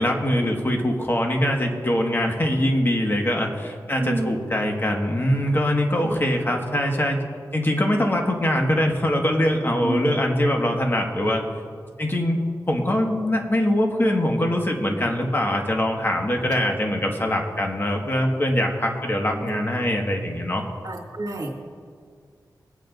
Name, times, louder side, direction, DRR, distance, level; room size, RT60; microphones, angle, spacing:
voice 1, 0.0-7.2 7.5-11.4 12.0-12.4 12.7-20.6, left 1 dB, 30° left, 1 dB, 1.7 m, -23 dB
voice 2, 4.0-4.3 6.0-6.2 9.8-10.1 19.4-19.6 20.8-21.5, right 2 dB, 55° right, -2 dB, 2.2 m, -29 dB
23.0 x 8.7 x 2.6 m, 2.1 s
wide cardioid pair, 70°, 8 cm